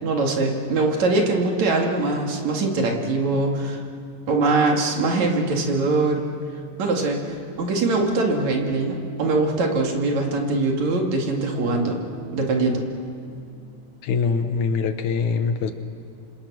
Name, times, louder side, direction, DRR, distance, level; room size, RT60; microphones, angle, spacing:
voice 1, 0.0-3.8 4.3-6.3 6.8-12.0 12.3-12.9, right 3 dB, 60° right, 1 dB, 3.5 m, -22 dB
sound 1, 6.2-13.7, right 1 dB, 25° right, 4.4 m, -41 dB
voice 2, 14.0-15.7, left 5 dB, 75° left, 8 dB, 2.4 m, -23 dB
27.5 x 26.5 x 6.2 m, 2.5 s
omnidirectional pair, 3.7 m